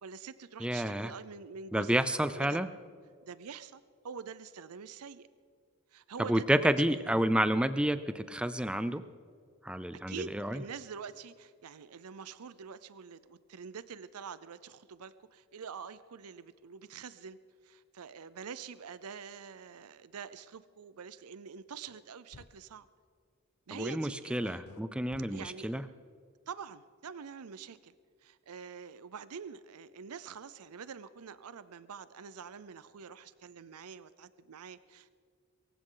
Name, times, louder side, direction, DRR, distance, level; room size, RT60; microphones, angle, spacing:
voice 1, 0.0-2.0 2.4-2.6 3.2-5.3 5.9-7.1 10.1-17.4 17.6-22.9 23.7-24.6 25.3-25.7 26.5-27.9 28.2-35.1, right 6 dB, 85° right, 15 dB, 0.6 m, -46 dB
voice 2, 0.6-1.1 1.7-2.7 6.3-9.0 9.6-10.6 23.7-25.8, right 1 dB, 5° right, 12 dB, 0.4 m, -30 dB
sound 1, 21.9-22.0 22.3-22.5 24.6-24.8 25.1-25.3, left 4 dB, 85° left, 0.6 m, -52 dB
24.0 x 15.5 x 3.9 m, 2.1 s
head